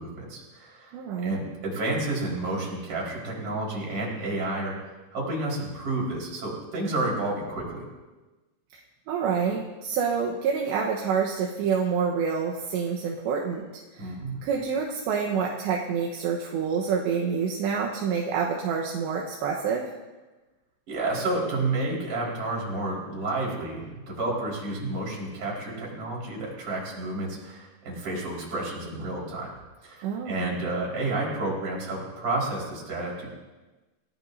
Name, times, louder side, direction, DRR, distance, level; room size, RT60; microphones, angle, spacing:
voice 1, 0.0-0.9 1.2-4.8 5.1-7.9 14.0-14.4 20.9-29.5 29.8-33.3, right 2 dB, 45° right, -4 dB, 6.0 m, -30 dB
voice 2, 0.9-1.4 9.1-14.1 14.4-19.9 30.0-30.5, right 6 dB, 75° right, -1 dB, 3.3 m, -27 dB
28.5 x 17.5 x 2.7 m, 1.2 s
omnidirectional pair, 5.3 m